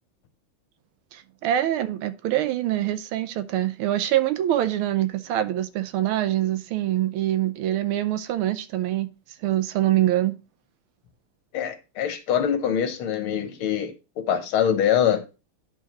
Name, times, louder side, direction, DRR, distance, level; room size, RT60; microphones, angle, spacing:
voice 1, 1.1-9.1 9.4-10.3, right 13 dB, 90° right, 1.5 m, -24 dB
voice 2, 11.5-15.2, left 9 dB, 80° left, 1.9 m, -24 dB
10.0 x 4.7 x 2.9 m
omnidirectional pair, 2.3 m